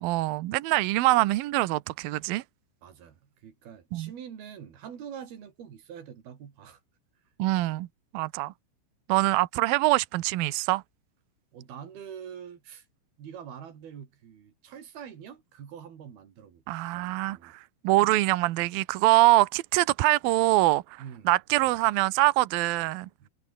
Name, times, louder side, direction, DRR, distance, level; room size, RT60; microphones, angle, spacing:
voice 1, 0.0-2.4 3.9-4.1 7.4-7.9 8.1-8.5 9.1-10.8 16.7-17.5 17.8-20.8 21.3-23.1, right 19 dB, 80° right, 2.1 m, -24 dB
voice 2, 2.8-6.8 11.5-12.9 13.2-17.6 21.0-21.3 23.2-23.3, right 8 dB, 55° right, 4.7 m, -45 dB
omnidirectional pair, 5.5 m